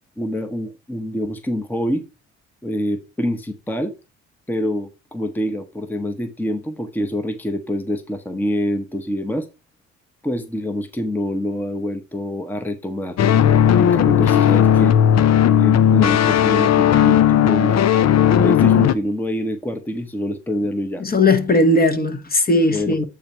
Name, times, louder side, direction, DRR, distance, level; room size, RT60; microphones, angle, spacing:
voice 1, 0.2-2.0 2.6-4.0 4.5-9.5 10.2-13.2 13.8-15.0 15.5-17.9 18.4-21.0 22.7-23.0, left 1 dB, 5° left, 0.8 m, -26 dB
sound 1, 13.2-18.9, left 9 dB, 60° left, 0.6 m, -15 dB
voice 2, 21.0-23.1, left 2 dB, 30° left, 1.1 m, -17 dB
8.6 x 3.1 x 5.4 m
cardioid pair, 90°, 30 cm